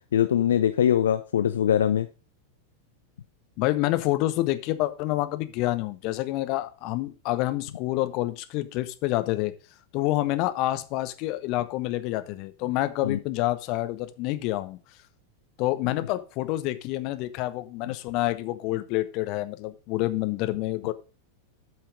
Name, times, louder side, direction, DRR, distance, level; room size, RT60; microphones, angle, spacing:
voice 1, 0.1-2.1 13.0-13.2, left 9 dB, 65° left, 10 dB, 0.5 m, -22 dB
voice 2, 3.6-9.5 9.9-14.8 15.6-20.9, left 16 dB, 40° left, 11 dB, 0.9 m, -28 dB
8.7 x 5.6 x 5.2 m, 0.33 s
figure-of-eight pair, 90°, 0 cm